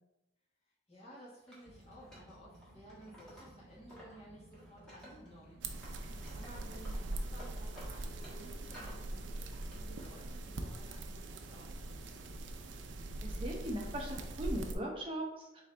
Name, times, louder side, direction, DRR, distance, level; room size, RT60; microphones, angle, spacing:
voice 1, 0.9-5.9 6.1-12.3, equal, 35° left, -6 dB, 1.5 m, -56 dB
Wood, 1.5-4.2 4.5-5.5 5.8-9.0 9.4-10.1, equal, 5° left, 1.4 m, -55 dB
sound 1, 1.6-7.9, right 1 dB, 45° right, 1.1 m, -58 dB
sound 2, 5.6-14.8, right 2 dB, 80° right, 0.5 m, -42 dB
voice 2, 13.2-15.6, right 1 dB, 30° right, -1 dB, 0.9 m, -39 dB
4.1 x 3.9 x 3.3 m, 0.92 s
head